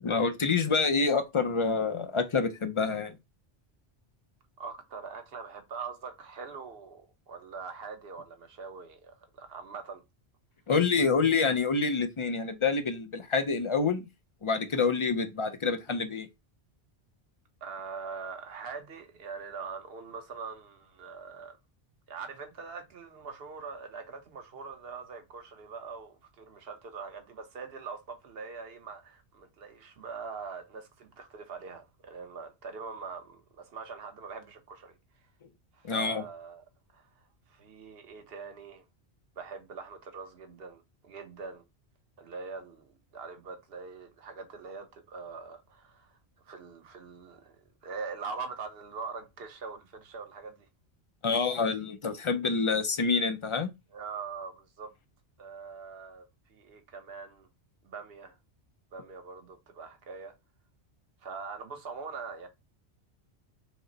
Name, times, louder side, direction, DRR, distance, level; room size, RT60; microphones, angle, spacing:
voice 1, 0.0-3.2 10.7-14.1 14.4-16.3 35.8-36.2 51.2-53.7, left 4 dB, 45° left, 0.4 m, -27 dB
voice 2, 4.6-10.0 17.6-21.6 22.1-34.9 35.7-36.6 36.9-38.8 39.4-41.6 42.2-46.2 46.4-47.6 47.8-50.7 53.9-54.9 55.4-57.5 57.8-58.4 58.9-60.3 61.2-62.5, right 5 dB, 60° right, 1.1 m, -43 dB
6.0 x 2.0 x 3.9 m
omnidirectional pair, 1.2 m